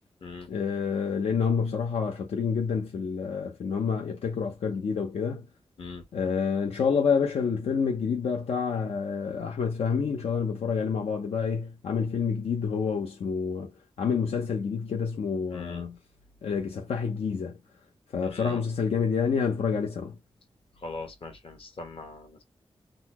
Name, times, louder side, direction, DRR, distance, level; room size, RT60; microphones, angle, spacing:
voice 1, 0.5-5.5 6.1-16.0 16.4-17.6 18.1-20.2, left 6 dB, 90° left, 0.6 m, -28 dB
voice 2, 15.5-15.9 18.2-18.6 20.8-22.4, left 3 dB, 65° left, 1.2 m, -41 dB
3.9 x 2.0 x 2.9 m
wide cardioid pair, 110°, 10 cm